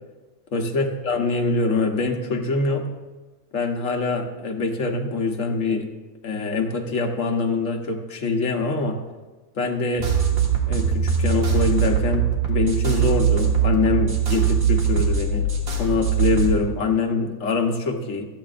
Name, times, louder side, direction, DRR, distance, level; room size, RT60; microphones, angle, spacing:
voice 1, 0.5-2.9 3.5-5.8 6.2-9.0 9.5-10.1 10.7-15.5 15.8-18.3, left 3 dB, 60° left, 3 dB, 1.5 m, -24 dB
sound 1, 10.0-16.5, right 7 dB, 65° right, 2.2 m, -21 dB
25.5 x 8.7 x 2.5 m, 1.2 s
omnidirectional pair, 1.6 m